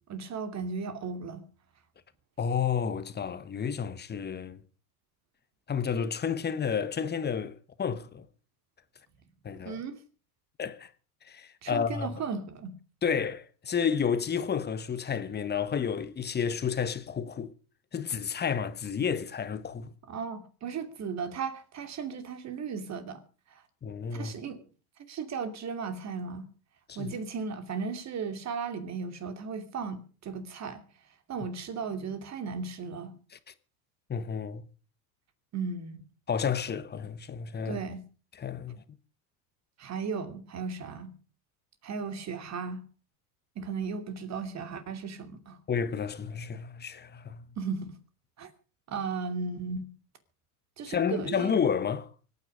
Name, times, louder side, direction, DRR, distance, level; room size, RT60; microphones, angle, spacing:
voice 1, 0.1-1.4 9.6-10.0 11.6-12.8 20.1-23.2 24.1-24.6 25.1-26.4 27.0-30.8 31.3-33.2 35.5-36.0 37.6-38.0 39.8-41.1 41.8-42.8 43.6-45.6 47.6-48.0 48.4-48.5 48.9-49.9 50.8-51.6, right 5 dB, 35° right, 2.7 m, -36 dB
voice 2, 2.4-4.6 5.7-8.2 9.4-9.8 10.6-10.9 11.3-12.2 13.0-17.5 17.9-19.9 23.8-24.4 26.9-27.1 34.1-34.7 36.3-37.8 38.3-38.8 45.7-47.4 50.9-52.1, left 7 dB, 20° left, 1.2 m, -31 dB
24.5 x 9.5 x 5.1 m
supercardioid pair, 110°, 46 cm